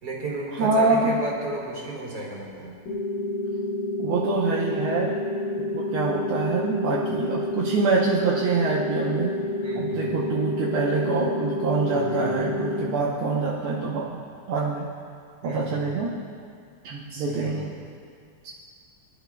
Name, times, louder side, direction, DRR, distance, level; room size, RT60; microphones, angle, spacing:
voice 1, 0.0-2.7 9.6-10.3 11.8-12.2 15.4-15.8 17.1-17.7, right 2 dB, 55° right, -3 dB, 3.3 m, -33 dB
voice 2, 0.5-1.2 4.0-5.3 5.6-9.3 9.8-14.2 14.5-14.9 15.4-16.2 16.8-17.7 18.4-18.5, right 3 dB, 80° right, -5 dB, 1.9 m, -25 dB
sound 1, 2.9-12.9, left 1 dB, 50° left, 1.8 m, -29 dB
24.0 x 12.0 x 2.3 m, 2.2 s
omnidirectional pair, 2.3 m